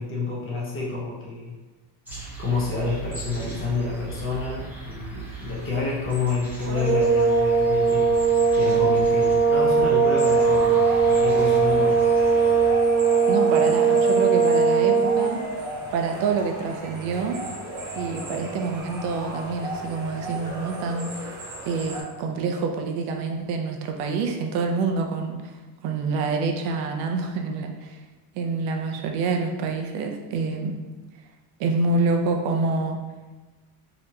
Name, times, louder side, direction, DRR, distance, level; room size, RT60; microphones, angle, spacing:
voice 1, 0.0-1.5 2.4-8.1 8.6-12.0, left 4 dB, 25° left, -4 dB, 0.7 m, -29 dB
sound 1, 2.0-12.7, right 4 dB, 5° right, 0.8 m, -39 dB
sound 2, 6.7-15.4, right 5 dB, 25° right, 0.3 m, -19 dB
sound 3, 10.4-22.0, right 2 dB, 45° right, 0.8 m, -36 dB
voice 2, 13.3-15.4 15.9-17.4 18.0-21.2 21.6-25.5 25.8-28.0 28.3-30.8 31.6-33.0, right 4 dB, 85° right, 3 dB, 0.7 m, -27 dB
4.1 x 2.9 x 2.7 m, 1.2 s
cardioid pair, 165°, 47 cm